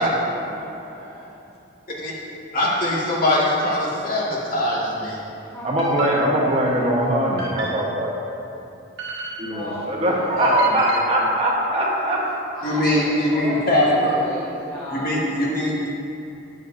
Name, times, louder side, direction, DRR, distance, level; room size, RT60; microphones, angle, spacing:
voice 1, 0.4-1.4 5.3-7.9 9.5-10.8 12.5-15.2, equal, 15° left, -8 dB, 1.0 m, -36 dB
voice 2, 2.5-5.2 10.4-10.6 12.6-14.2 14.9-15.9, left 1 dB, 45° left, -6 dB, 1.9 m, -22 dB
voice 3, 5.6-8.2 9.4-12.3, right 1 dB, 30° right, -3 dB, 1.1 m, -21 dB
sound 1, 5.8-6.8 7.4-8.1 9.0-9.8 10.6-11.3, right 2 dB, 65° right, 1.5 m, -33 dB
11.5 x 8.6 x 2.7 m, 2.7 s
head